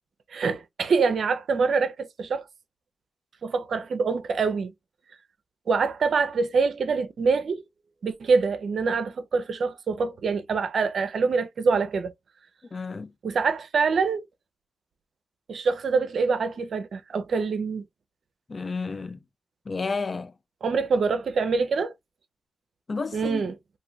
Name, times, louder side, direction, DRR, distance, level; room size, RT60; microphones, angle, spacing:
voice 1, 0.3-2.4 3.4-4.7 5.7-7.6 8.0-12.1 13.2-14.2 15.5-17.8 20.6-21.9 23.1-23.5, right 4 dB, 70° right, 0.5 m, -25 dB
voice 2, 12.7-13.1 18.5-19.2 19.7-20.3 22.9-23.4, left 4 dB, 50° left, 0.4 m, -31 dB
2.6 x 2.5 x 3.0 m
supercardioid pair, 40°, 0 cm